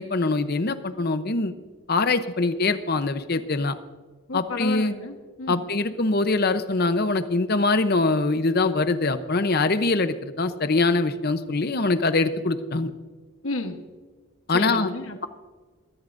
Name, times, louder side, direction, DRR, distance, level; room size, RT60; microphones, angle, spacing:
voice 1, 0.0-1.5 1.9-3.7 4.3-4.9 5.5-12.9 14.5-14.9, left 3 dB, 45° left, 10 dB, 0.8 m, -23 dB
voice 2, 4.3-5.6 13.4-13.8 14.5-15.3, left 2 dB, 70° left, 5 dB, 1.2 m, -32 dB
22.5 x 14.0 x 2.6 m, 1.3 s
head